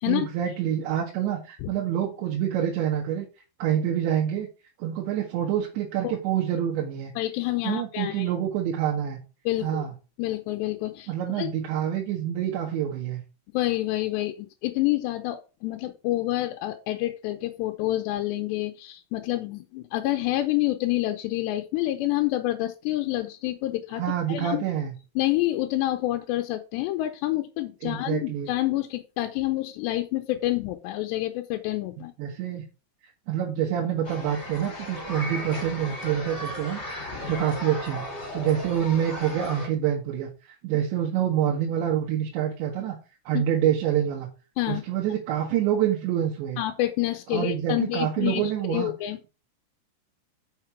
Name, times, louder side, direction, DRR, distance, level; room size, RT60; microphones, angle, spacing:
voice 1, 0.1-3.3 3.6-4.5 4.8-7.1 7.6-9.2 9.6-9.9 11.1-13.2 23.9-25.0 27.8-28.5 32.2-32.6 33.3-36.8 37.3-38.0 38.3-43.0 43.3-44.3 44.7-46.6 47.3-48.9, right 10 dB, 90° right, -1 dB, 3.6 m, -27 dB
voice 2, 7.2-8.3 9.5-9.8 10.2-11.1 11.4-11.5 13.5-24.0 24.3-24.6 25.2-32.1 43.3-43.4 44.6-44.8 46.6-48.4 48.7-49.2, left 16 dB, 85° left, 4 dB, 2.9 m, -28 dB
sound 1, 34.0-39.7, left 1 dB, 20° left, 2.3 m, -36 dB
6.5 x 5.9 x 5.8 m, 0.32 s
omnidirectional pair, 5.0 m